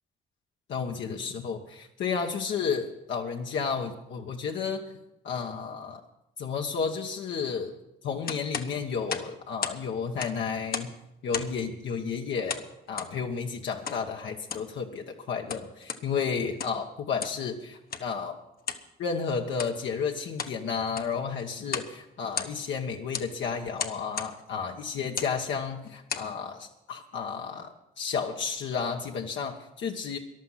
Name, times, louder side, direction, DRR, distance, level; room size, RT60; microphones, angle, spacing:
voice 1, 0.7-1.6 2.0-4.8 5.2-6.0 6.4-7.8 8.0-10.9 11.2-18.4 19.0-30.2, left 6 dB, 70° left, 1 dB, 1.3 m, -32 dB
sound 1, 8.3-9.8 10.1-11.0 11.3-11.7 12.5-13.1 13.9-14.0 14.4-14.7 15.3-16.0 16.5-16.8 17.2-17.4 17.9-18.1 18.6-18.9 19.5-19.8 20.2-20.6 20.9-21.2 21.7-21.9 22.2-22.8 23.1-23.3 23.8-24.3 25.0-25.4 25.9-26.3, left 6 dB, 50° left, 1.1 m, -35 dB
14.5 x 11.0 x 5.8 m, 0.85 s
cardioid pair, 90°, 20 cm